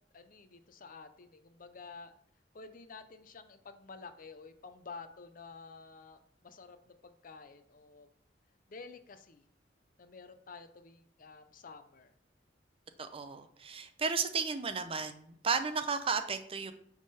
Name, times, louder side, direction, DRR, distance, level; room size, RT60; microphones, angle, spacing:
voice 1, 0.1-2.1 2.5-8.1 8.7-9.5 10.0-12.1, left 4 dB, 50° left, 9 dB, 0.6 m, -51 dB
voice 2, 13.0-16.7, right 5 dB, 30° right, 9 dB, 0.6 m, -34 dB
9.6 x 3.7 x 4.2 m, 0.66 s
head